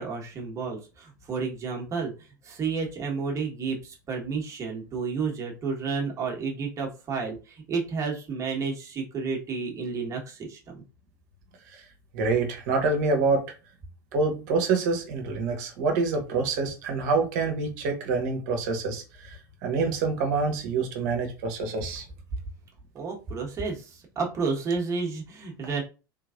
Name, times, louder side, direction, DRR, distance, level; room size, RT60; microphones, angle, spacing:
voice 1, 0.0-2.1 2.4-10.8 22.9-25.8, right 5 dB, 30° right, 1.4 m, -31 dB
voice 2, 12.1-13.5 14.1-22.0, right 4 dB, 55° right, 1.1 m, -26 dB
3.5 x 3.0 x 2.5 m
figure-of-eight pair, 80°, 11 cm